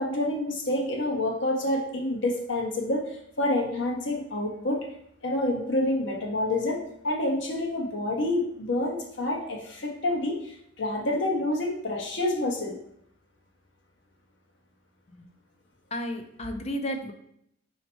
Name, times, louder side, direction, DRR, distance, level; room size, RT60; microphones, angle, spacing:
voice 1, 0.0-3.0 3.4-4.8 5.2-12.8, left 1 dB, 60° left, 0 dB, 1.0 m, -28 dB
voice 2, 15.9-17.1, equal, 30° left, 6 dB, 0.5 m, -33 dB
4.4 x 2.8 x 4.3 m, 0.73 s
head